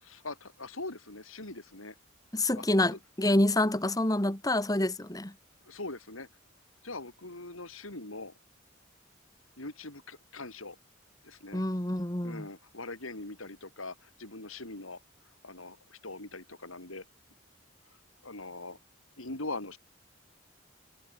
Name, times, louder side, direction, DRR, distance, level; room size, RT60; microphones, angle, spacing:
voice 1, 0.0-1.9 2.6-2.7 5.7-6.3 6.8-8.3 9.6-10.8 11.2-11.6 12.2-15.0 15.4-17.0 18.2-18.8 19.2-19.8, left 2 dB, 90° left, 5.2 m, -42 dB
voice 2, 2.3-5.3 11.5-12.5, left 1 dB, 20° left, 1.7 m, -27 dB
head